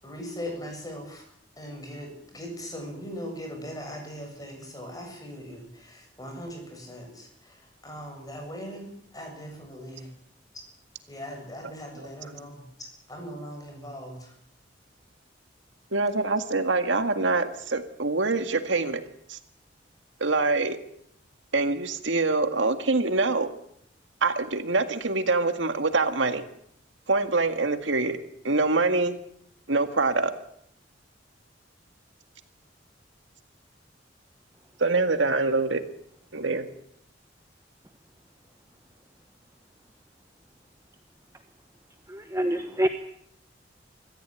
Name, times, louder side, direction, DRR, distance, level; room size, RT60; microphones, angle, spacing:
voice 1, 0.0-1.2 1.6-10.1 11.1-14.3, equal, 20° left, 3 dB, 7.7 m, -40 dB
voice 2, 15.9-19.0 19.3-19.4 20.2-20.8 21.5-23.5 24.2-26.4 27.1-28.2 28.4-29.2 29.7-30.3 34.8-35.8 36.3-36.7, right 3 dB, 80° right, 8 dB, 2.0 m, -25 dB
voice 3, 42.1-42.9, equal, 15° right, 7 dB, 1.2 m, -26 dB
25.5 x 15.0 x 9.1 m, 0.70 s
head